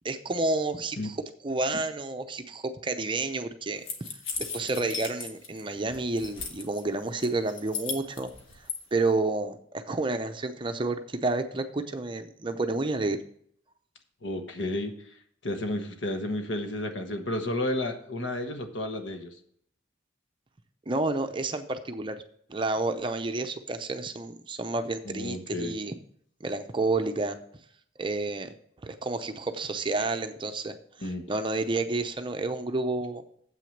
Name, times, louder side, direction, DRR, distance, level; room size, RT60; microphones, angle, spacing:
voice 1, 0.0-1.2 1.4-4.2 4.5-8.3 8.9-13.2 20.9-22.2 22.5-26.0 26.4-27.4 28.0-28.5 28.8-33.2, right 2 dB, 25° right, 7 dB, 0.6 m, -30 dB
sound 1, 3.9-5.6 5.9-6.8 7.2-8.8, left 5 dB, 80° left, 1.4 m, -36 dB
voice 2, 14.2-14.9 15.4-19.3 25.1-25.8 31.0-31.2, left 1 dB, 65° left, 6 dB, 1.2 m, -32 dB
7.8 x 6.2 x 6.6 m, 0.65 s
head